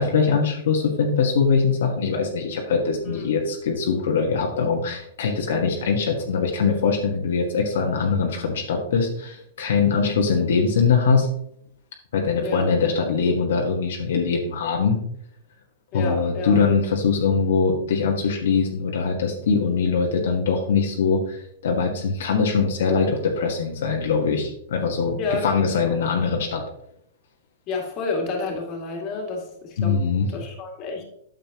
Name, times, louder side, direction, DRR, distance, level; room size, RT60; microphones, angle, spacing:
voice 1, 0.0-11.3 12.1-15.0 15.9-26.6 29.8-30.3, left 5 dB, 75° left, 1 dB, 1.3 m, -22 dB
voice 2, 3.0-3.4 12.4-12.7 15.9-16.6 25.2-26.1 27.7-30.0 30.3-31.0, left 3 dB, 35° left, 0 dB, 2.1 m, -30 dB
9.1 x 6.7 x 2.9 m, 0.72 s
hypercardioid pair, 145°, 0 cm